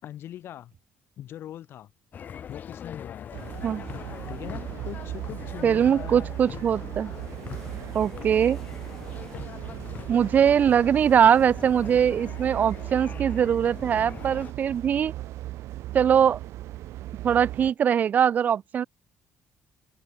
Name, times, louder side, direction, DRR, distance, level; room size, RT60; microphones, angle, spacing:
voice 1, 0.0-0.7 1.2-1.9 2.5-3.5 4.3-6.4, left 11 dB, 55° left, 2.8 m, -41 dB
sound 1, 2.1-14.5, left 8 dB, 40° left, 2.2 m, -42 dB
sound 2, 3.3-17.7, right 15 dB, 80° right, 1.8 m, -37 dB
sound 3, 3.5-13.9, left 1 dB, 5° left, 6.3 m, -51 dB
voice 2, 5.6-7.1 7.9-8.6 10.1-15.1 15.9-16.4 17.2-18.8, right 8 dB, 35° right, 0.4 m, -21 dB
open air
cardioid pair, 160°, 5 cm